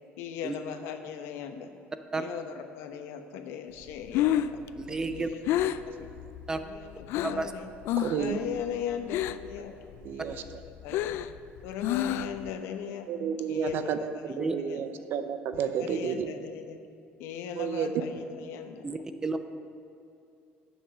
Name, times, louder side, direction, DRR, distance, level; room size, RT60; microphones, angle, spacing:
voice 1, 0.2-1.7 2.2-4.6 5.1-6.1 6.6-7.7 8.2-9.7 10.1-10.5 10.8-11.2 11.6-13.1 13.5-14.8 15.6-16.8 17.2-18.9, left 8 dB, 90° left, 7 dB, 0.9 m, -39 dB
Breathing, 3.9-7.5 7.8-8.3 8.6-9.6 9.9-12.5, left 12 dB, 70° left, 0.3 m, -29 dB
voice 2, 4.8-5.3 6.5-6.6 7.2-7.5 14.3-14.6 18.8-19.4, right 3 dB, 15° right, 9 dB, 0.5 m, -31 dB
voice 3, 8.0-8.4 10.0-10.3 13.1-16.3 17.6-17.9, right 7 dB, 55° right, 9 dB, 0.7 m, -31 dB
10.0 x 7.2 x 6.1 m, 2.7 s
cardioid pair, 155°, 4 cm